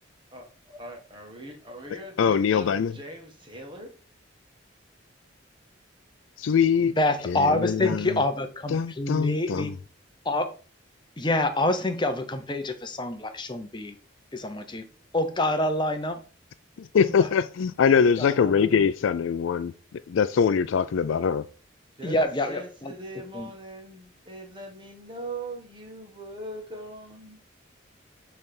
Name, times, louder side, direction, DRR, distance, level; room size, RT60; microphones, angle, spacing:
voice 1, 0.3-3.9 22.0-27.4, right 1 dB, 25° right, 1.6 m, -41 dB
voice 2, 2.2-2.9 6.4-6.9 7.3-8.1 8.7-9.7 16.8-21.5, left 6 dB, 75° left, 0.4 m, -23 dB
voice 3, 6.8-9.7 10.2-10.5 11.2-14.0 14.3-14.9 15.1-16.2 17.0-17.3 18.2-18.8 22.0-22.9 23.3-23.5, left 1 dB, 25° left, 0.7 m, -27 dB
8.1 x 3.3 x 5.3 m
head